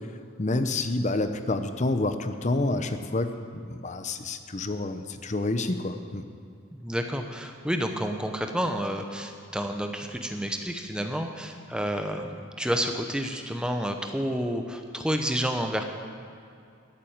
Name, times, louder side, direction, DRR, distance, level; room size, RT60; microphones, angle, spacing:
voice 1, 0.4-3.3 3.7-6.2, left 2 dB, 30° left, 9 dB, 0.6 m, -28 dB
voice 2, 6.7-15.8, equal, 5° right, 5 dB, 0.8 m, -30 dB
13.5 x 7.5 x 8.8 m, 2.5 s
head